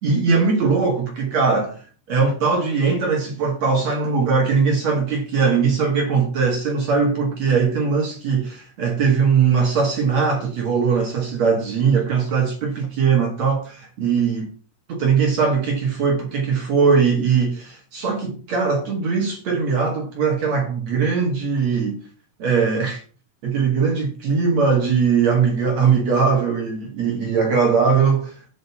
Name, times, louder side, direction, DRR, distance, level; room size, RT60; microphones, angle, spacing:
voice 1, 0.0-1.8 2.1-14.5 14.9-22.0 22.4-23.0 23.4-28.3, right 5 dB, 55° right, 1.9 m, -20 dB
8.8 x 5.3 x 7.0 m
omnidirectional pair, 5.9 m